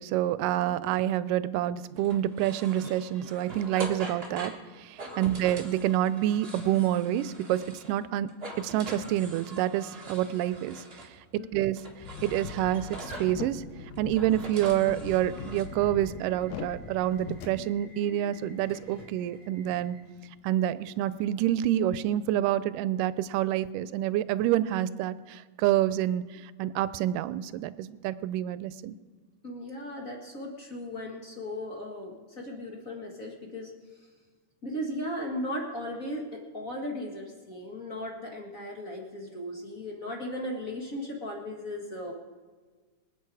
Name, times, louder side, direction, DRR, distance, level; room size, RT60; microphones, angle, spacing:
voice 1, 0.0-4.5 4.8-8.3 8.6-10.8 11.3-11.8 12.2-13.6 14.0-20.0 20.4-29.0, right 12 dB, 85° right, 16 dB, 2.2 m, -28 dB
sound 1, 2.0-8.0 8.3-11.1 11.8-13.4 14.0-15.6, right 2 dB, 30° right, 1.2 m, -43 dB
voice 2, 5.1-5.5 11.4-11.6 29.4-33.7 34.6-42.1, left 1 dB, 35° left, 0 dB, 1.4 m, -37 dB
sound 2, 12.0-17.5, left 6 dB, 80° left, 2.6 m, -41 dB
Subway metro underground / Alarm, 12.6-22.3, equal, 5° right, 4.0 m, -53 dB
24.0 x 8.8 x 4.8 m, 1.4 s
omnidirectional pair, 3.7 m